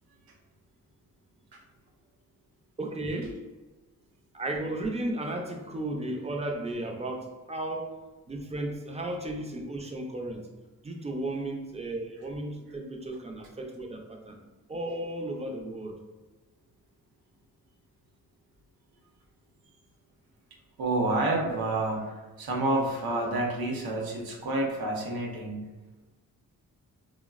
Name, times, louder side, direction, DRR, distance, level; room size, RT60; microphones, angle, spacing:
voice 1, 2.8-3.4 4.3-8.0 8.3-10.5 10.8-14.4 14.7-16.0, right 1 dB, 20° right, 2 dB, 0.4 m, -34 dB
voice 2, 20.8-25.7, right 2 dB, 85° right, -1 dB, 0.7 m, -29 dB
3.8 x 2.0 x 2.3 m, 1.2 s
cardioid pair, 95°, 35 cm